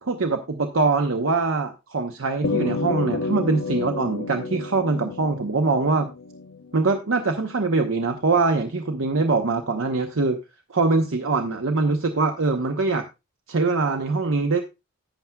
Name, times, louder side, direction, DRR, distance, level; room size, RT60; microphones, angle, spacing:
voice 1, 0.0-6.1 6.7-10.4 10.7-13.0 13.5-14.6, right 3 dB, 75° right, 6 dB, 0.8 m, -23 dB
sound 1, 2.4-7.1, left 3 dB, 80° left, 0.7 m, -30 dB
11.5 x 9.0 x 2.3 m, 0.24 s
head